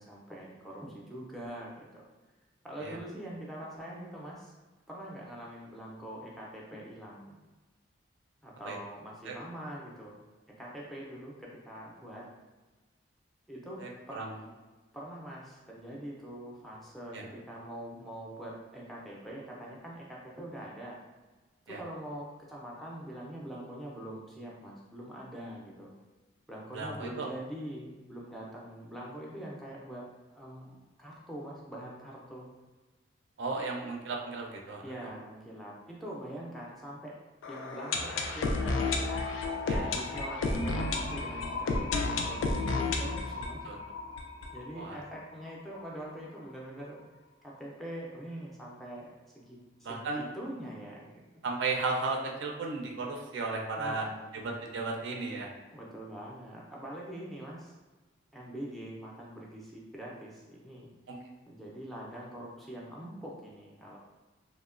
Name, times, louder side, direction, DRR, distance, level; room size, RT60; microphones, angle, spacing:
voice 1, 0.0-2.0 2.6-4.5 4.9-7.4 8.4-10.2 10.5-12.3 13.5-14.3 14.9-21.0 21.7-25.9 26.5-30.1 30.4-32.5 34.8-37.2 37.5-39.2 39.7-43.6 44.5-47.0 47.4-51.2 53.7-54.3 55.7-57.8 58.3-60.9 61.5-64.0, right 1 dB, ahead, -5 dB, 0.4 m, -44 dB
voice 2, 13.8-14.3 17.1-17.2 21.7-21.8 26.7-27.3 33.4-34.8 39.7-39.9 43.6-43.8 44.7-45.0 49.8-50.3 51.4-54.1 54.3-55.5 61.1-61.2, right 3 dB, 65° right, 0 dB, 0.4 m, -34 dB
sound 1, 37.4-45.2 45.5-45.6 45.7-45.8 46.4-46.5, left 3 dB, 80° left, 0.3 m, -32 dB
2.9 x 2.1 x 2.4 m, 1.2 s
head